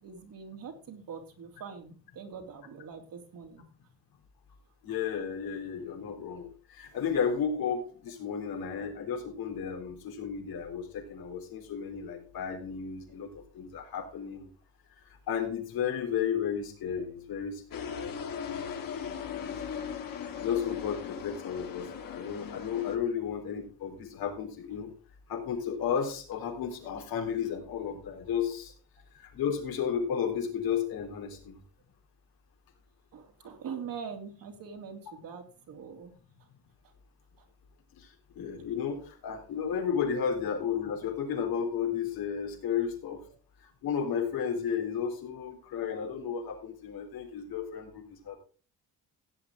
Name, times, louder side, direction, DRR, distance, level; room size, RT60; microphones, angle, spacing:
voice 1, 0.0-3.6 33.1-36.1 36.8-36.9 37.4-37.5 40.3-40.4, right 6 dB, 70° right, 3 dB, 3.2 m, -43 dB
voice 2, 4.8-14.5 15.0-18.8 19.0-19.9 20.4-24.9 25.3-28.7 29.1-31.6 37.9-43.2 43.6-48.4, left 7 dB, 85° left, 3 dB, 3.7 m, -33 dB
sound 1, 17.7-23.0, left 7 dB, 70° left, 2.4 m, -38 dB
16.5 x 8.7 x 3.8 m, 0.37 s
cardioid pair, 100°, 35 cm